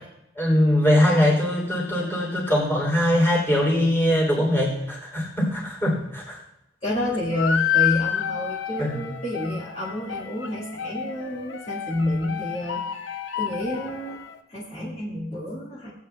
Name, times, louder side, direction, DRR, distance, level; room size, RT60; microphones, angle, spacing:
voice 1, 0.3-6.4 8.8-9.0, left 1 dB, 10° left, -4 dB, 3.1 m, -21 dB
voice 2, 6.8-14.2 14.5-15.9, left 1 dB, 30° left, -8 dB, 1.9 m, -29 dB
sound 1, 7.3-14.4, left 9 dB, 65° left, 0.7 m, -29 dB
19.5 x 8.4 x 2.3 m, 0.85 s
head